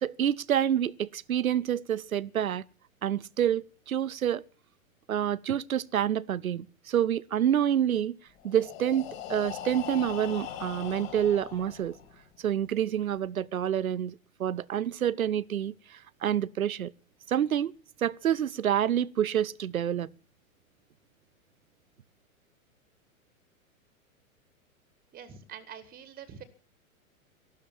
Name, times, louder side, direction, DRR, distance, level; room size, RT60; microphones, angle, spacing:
voice 1, 0.0-2.6 3.0-4.4 5.1-8.2 8.4-12.0 12.4-16.9 17.3-17.7 18.0-20.1, right 10 dB, 75° right, 0.7 m, -28 dB
Breathing, 8.4-12.3, left 10 dB, 45° left, 5.3 m, -40 dB
voice 2, 25.1-26.4, right 8 dB, 20° right, 1.9 m, -45 dB
15.0 x 12.0 x 7.4 m
figure-of-eight pair, 100°, 42 cm